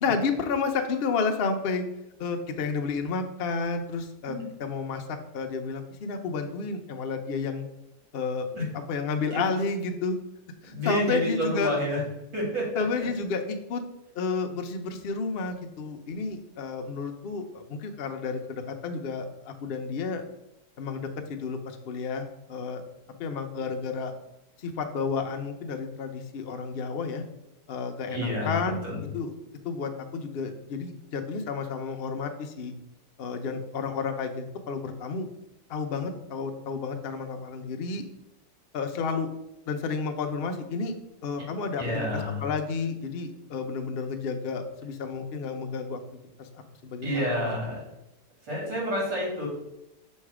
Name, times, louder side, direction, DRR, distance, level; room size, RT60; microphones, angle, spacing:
voice 1, 0.0-1.9 2.2-7.7 8.1-8.5 8.7-10.2 10.6-11.8 12.8-13.8 14.1-20.2 20.8-22.8 23.2-24.1 24.6-27.2 27.7-28.8 29.1-29.3 29.6-32.7 33.2-35.3 35.7-38.1 38.7-39.3 39.7-41.0 41.2-46.0 46.4-46.5 46.8-47.5, left 4 dB, 80° left, 5 dB, 0.5 m, -31 dB
voice 2, 10.7-12.0 12.3-12.8 28.1-28.6 28.8-29.0 41.8-42.4 47.0-47.8 48.4-49.5, equal, 85° right, -3 dB, 3.0 m, -29 dB
6.4 x 3.2 x 4.8 m, 0.89 s
omnidirectional pair, 1.9 m